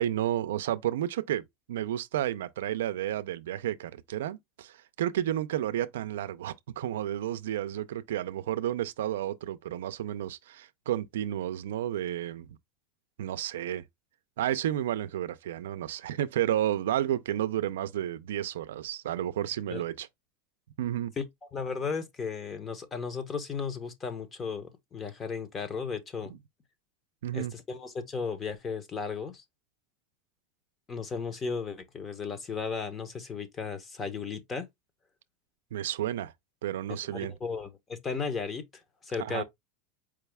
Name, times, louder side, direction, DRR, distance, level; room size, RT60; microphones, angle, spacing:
voice 1, 0.0-12.5 13.2-13.8 14.4-20.1 20.8-21.1 27.2-27.5 35.7-36.3 36.6-37.3 39.2-39.4, right 12 dB, 90° right, 0.4 m, -31 dB
voice 2, 21.5-26.3 27.3-29.4 30.9-34.7 37.1-38.6 39.0-39.4, left 5 dB, 20° left, 0.7 m, -35 dB
4.7 x 2.3 x 3.3 m
supercardioid pair, 145°, 0 cm